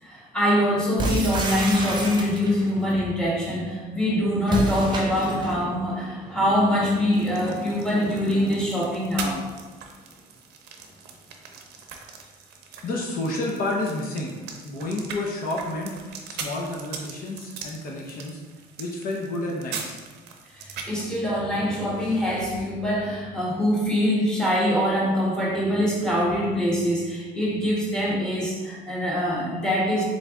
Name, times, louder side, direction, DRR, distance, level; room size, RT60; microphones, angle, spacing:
voice 1, 0.0-9.5 20.5-30.0, equal, 5° left, -5 dB, 1.3 m, -24 dB
sound 1, 1.0-2.7 4.4-5.6, right 1 dB, 25° right, 0.8 m, -28 dB
sound 2, 7.1-21.0, right 5 dB, 80° right, 0.6 m, -41 dB
voice 2, 12.8-14.4 14.6-16.0 16.3-18.4 18.8-20.0, left 2 dB, 55° left, -1 dB, 0.7 m, -30 dB
3.9 x 3.3 x 3.6 m, 1.3 s
cardioid pair, 110°, 17 cm